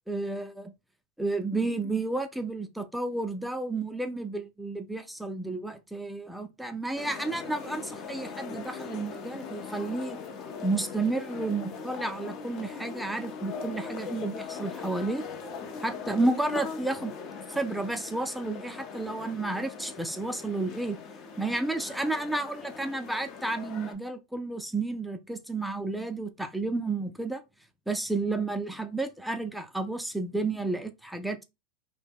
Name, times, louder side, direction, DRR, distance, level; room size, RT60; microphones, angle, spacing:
voice 1, 0.1-0.7 1.2-10.2 10.6-15.2 15.8-17.1 17.5-21.0 21.4-27.4 27.9-31.4, right 2 dB, 5° right, 0.3 m, -31 dB
sound 1, 6.9-23.9, left 5 dB, 50° left, 0.5 m, -40 dB
2.2 x 2.0 x 3.3 m
hypercardioid pair, 105°, 0 cm